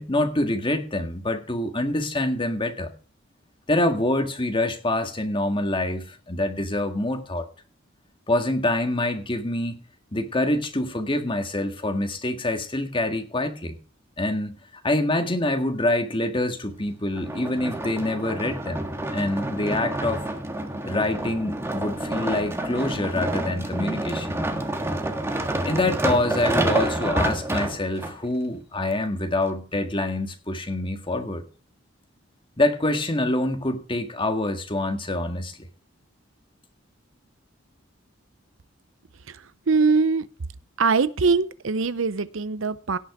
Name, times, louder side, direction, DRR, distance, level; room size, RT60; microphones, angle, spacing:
voice 1, 0.0-2.9 3.7-7.5 8.3-9.8 10.1-13.8 14.2-18.9 19.1-20.2 20.8-24.4 25.6-31.5 32.6-35.6, left 1 dB, 25° left, 1.8 m, -26 dB
sound 1, 17.1-28.1 28.8-28.9, right 1 dB, 15° right, 1.5 m, -28 dB
voice 2, 39.3-40.3 40.8-43.0, right 4 dB, 75° right, 0.7 m, -22 dB
17.5 x 5.9 x 4.9 m
head